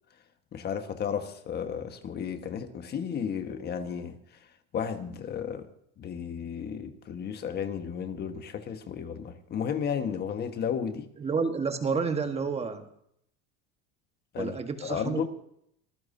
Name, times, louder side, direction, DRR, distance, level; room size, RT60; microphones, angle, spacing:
voice 1, 0.5-4.2 4.7-5.7 6.0-11.1 14.3-14.5 14.8-15.3, left 7 dB, 35° left, 1.4 m, -33 dB
voice 2, 11.2-12.9 14.4-15.3, right 5 dB, 20° right, 1.3 m, -30 dB
25.0 x 14.5 x 2.7 m
supercardioid pair, 135°, 30 cm